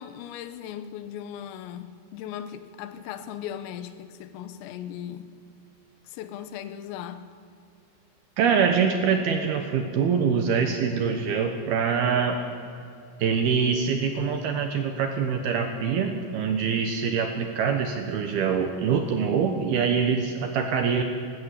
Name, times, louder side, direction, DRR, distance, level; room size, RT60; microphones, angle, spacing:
voice 1, 0.0-5.3 6.1-7.3, left 10 dB, 90° left, 3.7 m, -38 dB
voice 2, 8.4-12.4 13.2-21.0, right 6 dB, 70° right, 2.5 m, -24 dB
20.0 x 16.5 x 8.4 m
omnidirectional pair, 5.8 m